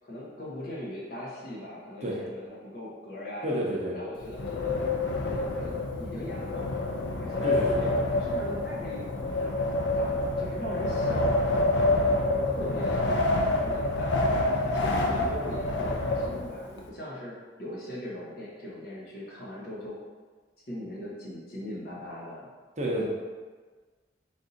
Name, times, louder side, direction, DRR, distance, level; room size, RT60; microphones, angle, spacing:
voice 1, 0.0-4.8 5.3-9.5 9.9-20.0 20.7-22.5, left 1 dB, 55° left, -5 dB, 1.0 m, -40 dB
voice 2, 3.4-3.9 7.4-7.8 22.8-23.0, right 1 dB, 40° right, -3 dB, 0.7 m, -29 dB
Wind, 4.2-16.8, left 2 dB, 85° left, 0.5 m, -27 dB
3.6 x 2.6 x 3.8 m, 1.4 s
head